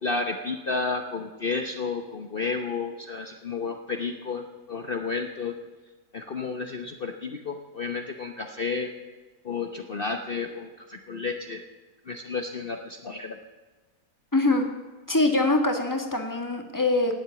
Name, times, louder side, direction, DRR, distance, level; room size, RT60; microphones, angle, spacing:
voice 1, 0.0-5.6 6.1-8.9 9.4-11.6 12.1-13.4, left 4 dB, 40° left, 5 dB, 1.0 m, -31 dB
voice 2, 14.3-14.7 15.1-17.2, left 2 dB, 10° left, 4 dB, 1.7 m, -23 dB
18.0 x 7.9 x 8.3 m, 1.3 s
omnidirectional pair, 1.7 m